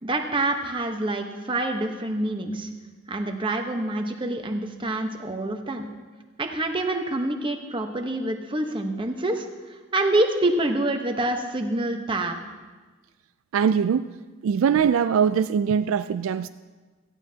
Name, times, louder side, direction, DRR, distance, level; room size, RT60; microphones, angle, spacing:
voice 1, 0.0-2.7 3.1-5.9 6.4-9.5 9.9-12.4, right 2 dB, 25° right, 4 dB, 1.0 m, -26 dB
voice 2, 13.5-14.1 14.4-16.5, right 7 dB, 75° right, 12 dB, 0.3 m, -22 dB
17.0 x 14.0 x 2.8 m, 1.3 s
head